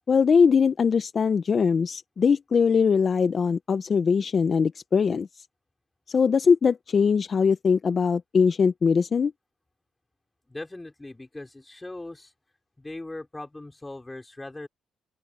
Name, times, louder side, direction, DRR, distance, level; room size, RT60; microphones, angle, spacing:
voice 1, 0.1-5.3 6.1-9.3, left 6 dB, 45° left, 0.8 m, -21 dB
voice 2, 10.5-12.3 12.8-14.7, left 2 dB, 15° left, 4.9 m, -39 dB
open air
cardioid pair, 90°, 0 cm